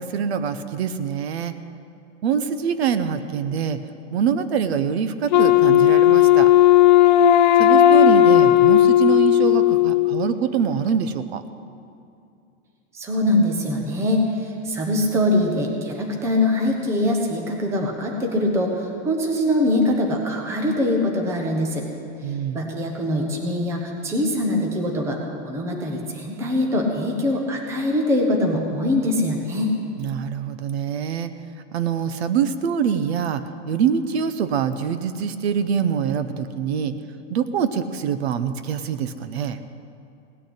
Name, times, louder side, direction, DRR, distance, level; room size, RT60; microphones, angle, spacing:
voice 1, 0.0-1.5 2.2-3.8 4.1-6.5 7.5-11.4 22.2-22.6 30.0-31.3 31.7-36.9 37.3-39.6, right 7 dB, 60° right, 11 dB, 0.8 m, -24 dB
Wind instrument woodwind instrument, 5.3-10.3, left 12 dB, 40° left, 0.4 m, -14 dB
voice 2, 12.9-21.9 22.3-29.8, left 1 dB, 5° right, 1 dB, 0.8 m, -23 dB
17.5 x 6.4 x 9.9 m, 2.6 s
supercardioid pair, 180°, 36 cm